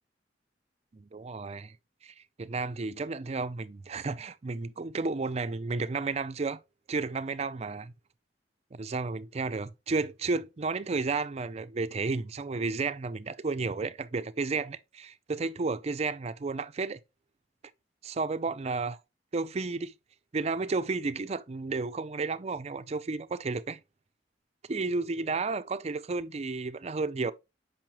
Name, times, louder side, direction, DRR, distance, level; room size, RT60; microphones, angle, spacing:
voice 1, 0.9-1.8 2.0-6.6 6.9-7.9 8.7-17.0 18.0-19.0 19.3-19.9 20.3-23.8 24.7-27.3, right 3 dB, 35° right, 0.5 m, -32 dB
7.2 x 5.6 x 2.9 m
head